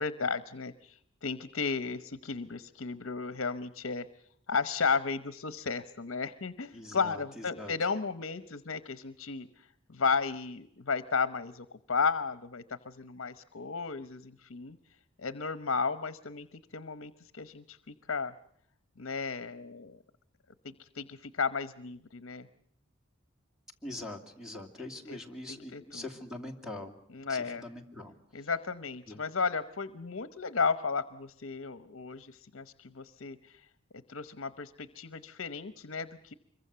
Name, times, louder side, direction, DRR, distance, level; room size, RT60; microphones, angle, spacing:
voice 1, 0.0-4.1 4.5-14.8 15.2-18.3 19.0-20.0 20.6-22.5 24.8-25.2 25.5-26.0 27.1-27.6 28.3-33.6 34.1-36.3, left 5 dB, 70° left, 13 dB, 0.9 m, -34 dB
voice 2, 6.7-7.7 23.8-26.9 27.3-28.1 29.1-29.2, left 2 dB, 5° right, 3 dB, 2.6 m, -43 dB
25.5 x 23.0 x 6.8 m, 0.69 s
head